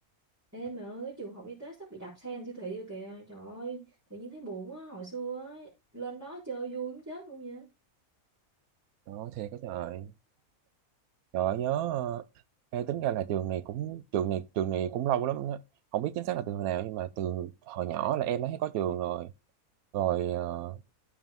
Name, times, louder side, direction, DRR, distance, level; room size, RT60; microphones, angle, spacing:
voice 1, 0.5-7.7, right 4 dB, 10° right, 4.2 m, -40 dB
voice 2, 9.1-10.1 11.3-12.2 12.7-15.6 15.9-19.3 19.9-20.8, right 11 dB, 90° right, 1.1 m, -31 dB
14.0 x 5.1 x 3.6 m
omnidirectional pair, 1.5 m